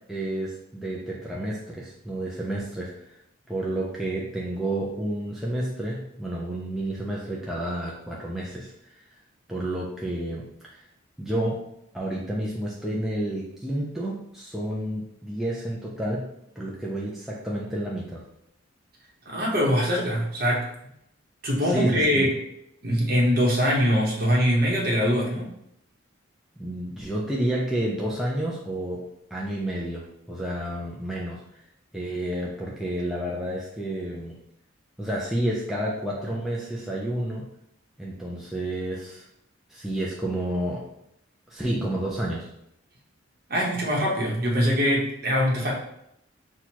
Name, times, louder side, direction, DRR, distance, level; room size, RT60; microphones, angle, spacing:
voice 1, 0.1-3.1 3.5-9.0 9.5-10.8 11.2-11.6 11.9-16.3 16.6-18.2 21.6-22.3 26.6-29.0 29.3-31.4 31.9-34.3 35.0-37.4 38.0-39.3 39.7-40.8 41.5-42.5, right 1 dB, ahead, -5 dB, 0.4 m, -30 dB
voice 2, 19.3-20.7 21.4-22.3 22.8-25.5 43.5-45.7, equal, 45° right, -3 dB, 1.0 m, -23 dB
6.0 x 2.4 x 2.9 m, 0.77 s
head